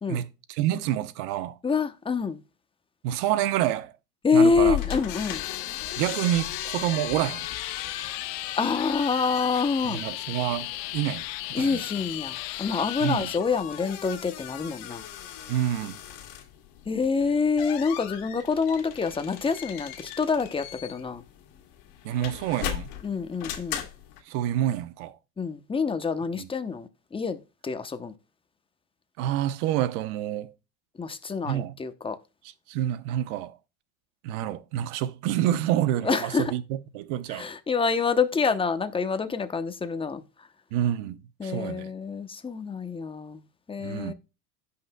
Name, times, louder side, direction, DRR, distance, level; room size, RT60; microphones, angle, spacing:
voice 1, 0.1-1.6 3.0-3.9 4.3-4.8 6.0-7.5 9.8-11.2 11.6-11.8 13.0-13.3 15.5-16.0 22.0-22.9 24.3-25.2 26.4-26.5 29.2-30.5 31.4-31.8 32.7-33.6 34.2-37.5 40.7-41.9 43.8-44.1, right 12 dB, 60° right, 1.0 m, -28 dB
voice 2, 1.6-2.4 4.2-5.4 8.6-10.0 11.5-15.0 16.9-21.2 23.0-23.8 25.4-28.1 31.0-32.2 36.0-36.5 37.3-40.2 41.4-43.4 43.7-44.1, left 5 dB, 10° left, 0.8 m, -27 dB
sound 1, 4.5-24.2, left 11 dB, 60° left, 2.0 m, -38 dB
sound 2, 5.3-13.4, left 19 dB, 80° left, 0.5 m, -36 dB
16.0 x 5.7 x 2.2 m
hypercardioid pair, 100°, 48 cm